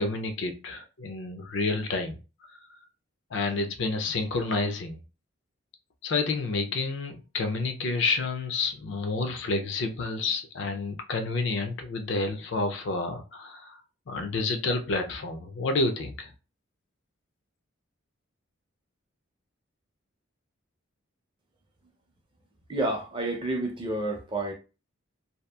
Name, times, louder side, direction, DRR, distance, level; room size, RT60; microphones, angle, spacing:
voice 1, 0.0-2.2 2.5-2.6 3.3-5.0 6.0-13.8 14.1-16.3, left 3 dB, 65° left, 0.4 m, -29 dB
voice 2, 22.7-24.5, right 2 dB, 25° right, 0.4 m, -29 dB
2.7 x 2.3 x 2.2 m
head